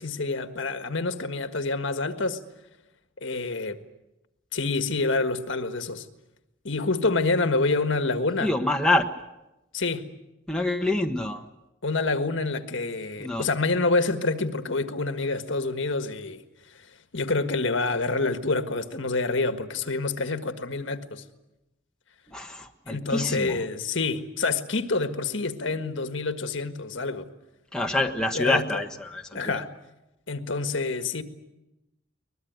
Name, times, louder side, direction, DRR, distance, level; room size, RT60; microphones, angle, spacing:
voice 1, 0.0-2.4 3.2-3.8 4.5-6.0 6.6-8.5 9.7-10.1 11.8-16.4 17.1-21.2 22.9-27.3 28.3-28.8 29.3-29.7 30.3-31.2, left 3 dB, 70° left, 1.6 m, -27 dB
voice 2, 8.4-9.0 10.5-11.5 13.2-13.5 22.3-23.6 27.7-29.6, left 2 dB, 5° left, 1.2 m, -26 dB
23.0 x 21.0 x 9.4 m
head